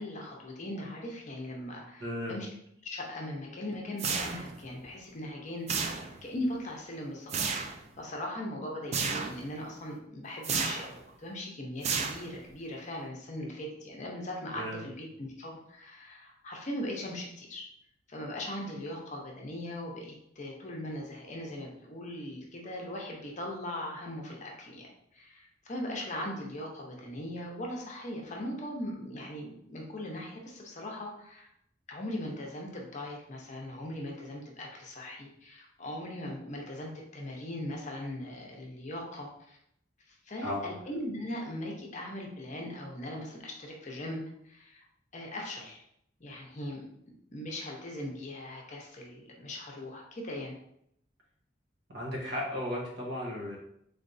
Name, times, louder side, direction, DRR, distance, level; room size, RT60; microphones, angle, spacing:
voice 1, 0.0-2.5 2.8-7.3 7.6-17.7 18.1-31.5 31.9-39.6 40.1-44.2 44.4-44.8 45.1-45.8 46.2-46.8 47.3-50.6, left 1 dB, 40° left, -1 dB, 0.8 m, -39 dB
voice 2, 2.0-2.4 14.5-14.8 40.4-40.7 51.9-53.6, left 1 dB, 60° right, -2 dB, 1.2 m, -35 dB
sound 1, 4.0-4.7 5.7-6.3 7.3-7.8 8.9-9.4 10.4-11.0 11.8-12.5, right 5 dB, 35° right, 0.4 m, -32 dB
3.9 x 3.3 x 2.6 m, 0.74 s
head